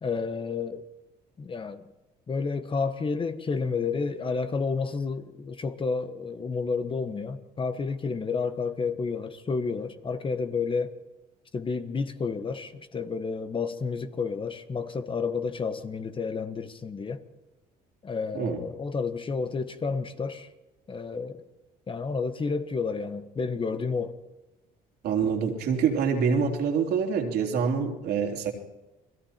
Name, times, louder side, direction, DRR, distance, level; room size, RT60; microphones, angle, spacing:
voice 1, 0.0-0.8 1.4-1.9 2.3-10.9 11.5-17.2 18.0-20.5 20.9-21.4 21.9-24.1, left 4 dB, 30° left, 1.5 m, -30 dB
voice 2, 25.0-28.5, right 6 dB, 70° right, 3.5 m, -26 dB
30.0 x 21.0 x 4.5 m
cardioid pair, 110°, 17 cm